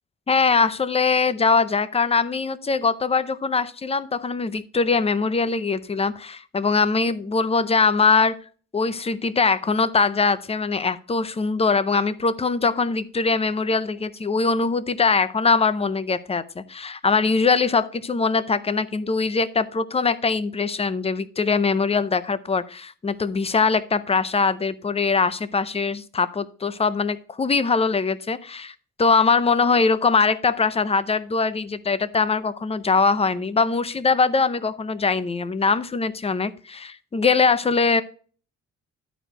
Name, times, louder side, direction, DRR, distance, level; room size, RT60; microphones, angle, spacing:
voice 1, 0.3-8.4 8.7-38.0, left 4 dB, 20° left, 15 dB, 0.5 m, -22 dB
11.0 x 4.6 x 4.9 m, 0.42 s
cardioid pair, 115°, 32 cm